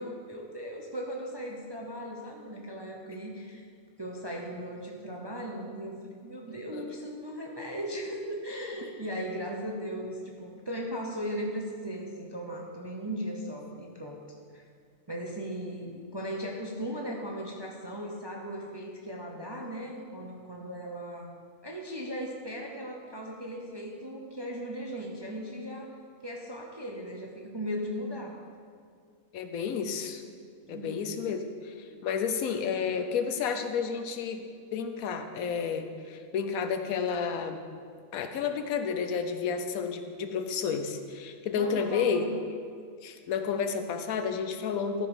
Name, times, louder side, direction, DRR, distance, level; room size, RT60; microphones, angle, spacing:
voice 1, 0.0-3.6 4.0-14.2 14.5-14.6 15.1-21.3 21.6-28.4 30.7-31.0 41.5-42.3, equal, 25° right, 0 dB, 0.5 m, -37 dB
voice 2, 29.3-30.2 30.7-34.4 34.7-37.6 38.1-42.3 43.0-45.1, left 6 dB, 75° left, 7 dB, 1.1 m, -31 dB
13.0 x 5.1 x 4.9 m, 2.1 s
omnidirectional pair, 1.5 m